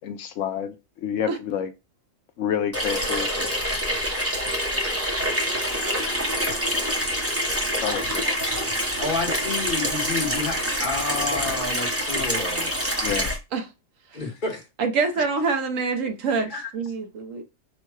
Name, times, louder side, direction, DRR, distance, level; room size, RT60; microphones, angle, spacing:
voice 1, 0.0-0.7 1.0-1.7 2.4-3.5 7.8-8.2 13.0-13.3, left 9 dB, 75° left, 0.9 m, -28 dB
Water tap faucet / Sink (filling or washing), 2.7-13.4, equal, 15° right, 0.7 m, -26 dB
voice 2, 9.0-12.7 14.1-14.6 16.5-16.7, left 3 dB, 40° left, 1.1 m, -29 dB
voice 3, 14.8-17.4, right 4 dB, 75° right, 1.2 m, -26 dB
4.4 x 2.2 x 4.7 m
omnidirectional pair, 1.4 m